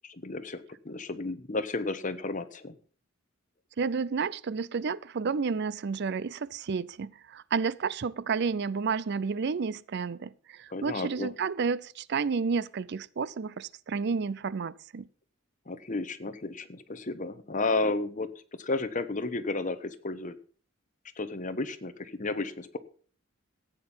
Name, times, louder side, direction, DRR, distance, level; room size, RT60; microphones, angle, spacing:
voice 1, 0.0-2.7 10.7-11.3 15.7-20.3 21.2-22.8, left 3 dB, 40° left, 1.1 m, -33 dB
voice 2, 3.8-15.1, right 5 dB, 55° right, 0.5 m, -31 dB
14.5 x 9.1 x 5.5 m
head